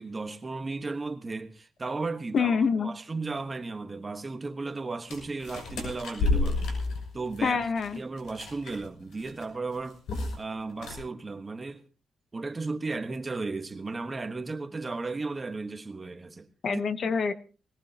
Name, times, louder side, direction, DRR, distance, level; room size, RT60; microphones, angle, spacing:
voice 1, 0.0-6.8 7.1-7.6 7.9-10.0 10.4-11.8 12.3-16.8, right 3 dB, 25° right, 1.3 m, -35 dB
voice 2, 2.3-2.9 7.4-8.0 16.6-17.3, left 5 dB, 50° left, 0.9 m, -26 dB
sound 1, 5.1-8.9 9.1-9.4 9.7-10.4 10.7-11.0, left 2 dB, 90° left, 6.4 m, -30 dB
20.5 x 19.0 x 2.9 m
cardioid pair, 130°, 0 cm